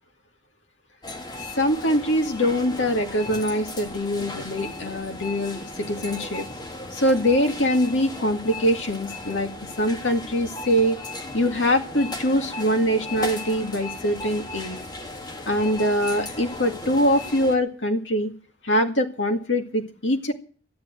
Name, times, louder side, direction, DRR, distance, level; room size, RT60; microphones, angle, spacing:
sound 1, 1.0-17.6, left 2 dB, 25° left, 2.1 m, -36 dB
voice 1, 1.6-6.5 6.9-11.0 11.3-14.8 15.5-18.3 18.6-20.3, equal, 85° left, 5 dB, 2.1 m, -23 dB
12.5 x 10.0 x 9.0 m, 0.43 s
head